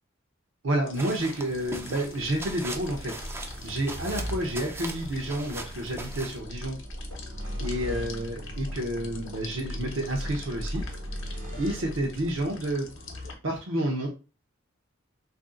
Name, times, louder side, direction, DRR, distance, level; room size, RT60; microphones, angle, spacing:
voice 1, 0.6-6.8 7.6-10.8 11.6-12.9 13.4-14.1, right 1 dB, 65° right, -2 dB, 0.7 m, -30 dB
sound 1, 0.7-13.3, equal, 85° right, 1.2 m, -38 dB
sound 2, 0.9-13.3, left 5 dB, 65° left, 0.8 m, -48 dB
sound 3, 0.9-6.4, right 2 dB, 10° right, 0.4 m, -40 dB
3.2 x 2.6 x 3.7 m, 0.34 s
head